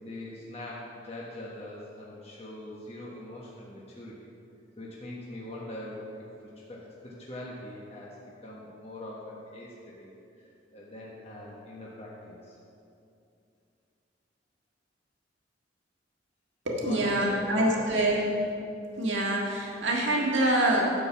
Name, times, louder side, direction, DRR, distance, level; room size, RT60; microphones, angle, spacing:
voice 1, 0.0-4.3 4.8-6.0 6.7-8.2 8.4-10.1 10.4-12.6 16.8-18.3, left 1 dB, 35° left, -5 dB, 1.2 m, -42 dB
voice 2, 16.6-18.3 18.9-20.8, right 1 dB, 75° right, -2 dB, 1.7 m, -25 dB
10.5 x 4.6 x 7.1 m, 2.6 s
head